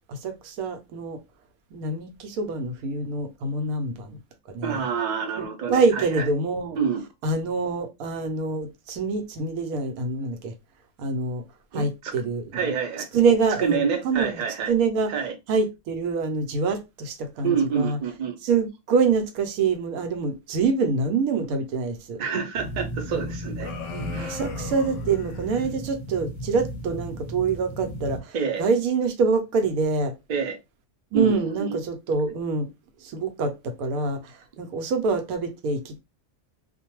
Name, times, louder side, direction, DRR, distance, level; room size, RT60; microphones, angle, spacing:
voice 1, 0.1-1.2 1.7-4.2 4.5-4.8 5.4-6.8 7.2-10.5 11.0-11.4 11.7-12.7 13.1-14.4 14.7-15.1 15.5-18.0 18.4-22.2 23.9-30.1 31.1-32.7 33.0-36.0, right 4 dB, 85° right, 1.1 m, -26 dB
voice 2, 4.6-6.2 6.8-7.0 11.7-12.1 12.5-13.1 13.6-14.7 15.1-15.3 17.4-18.4 22.2-23.7 24.1-24.4 28.3-28.6 30.3-30.6 31.1-31.8, right 6 dB, 50° right, 0.5 m, -27 dB
sound 1, 22.5-28.2, equal, 30° left, 0.5 m, -35 dB
sound 2, 23.6-25.7, left 5 dB, 65° left, 0.9 m, -40 dB
2.4 x 2.1 x 2.9 m
omnidirectional pair, 1.5 m